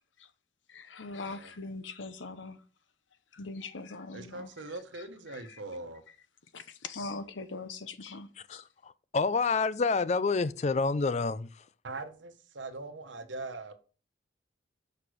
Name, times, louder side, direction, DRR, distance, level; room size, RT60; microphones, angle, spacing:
voice 1, 0.7-2.6 3.3-5.6 6.5-8.6, left 3 dB, 90° left, 0.9 m, -42 dB
voice 2, 4.1-6.0 11.8-13.7, right 2 dB, 85° right, 1.2 m, -41 dB
voice 3, 8.5-11.7, left 4 dB, 35° left, 0.4 m, -28 dB
6.7 x 5.4 x 6.3 m
head